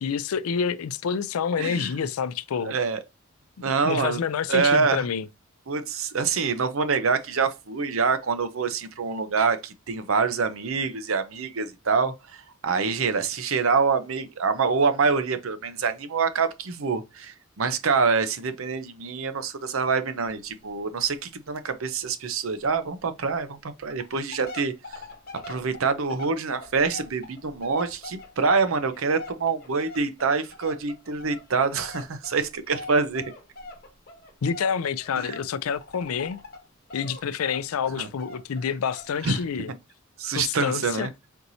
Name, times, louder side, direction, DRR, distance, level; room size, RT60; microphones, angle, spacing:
voice 1, 0.0-2.8 3.8-5.3 34.4-36.4 36.9-39.7 40.3-41.1, left 6 dB, 85° left, 0.4 m, -28 dB
voice 2, 1.6-1.9 2.6-3.0 3.6-4.2 4.5-5.1 5.7-25.0 25.5-33.2 35.2-35.4 38.0-38.1 39.2-39.4 40.2-41.1, right 5 dB, 70° right, 0.7 m, -26 dB
sound 1, 20.2-20.4 20.7-20.8 21.1-21.2 21.6-21.7 22.0-22.1 22.6-22.7 23.3-23.4 23.8-36.6 36.9-39.2 39.6-39.7, left 2 dB, 45° left, 1.2 m, -42 dB
4.5 x 4.0 x 2.7 m
head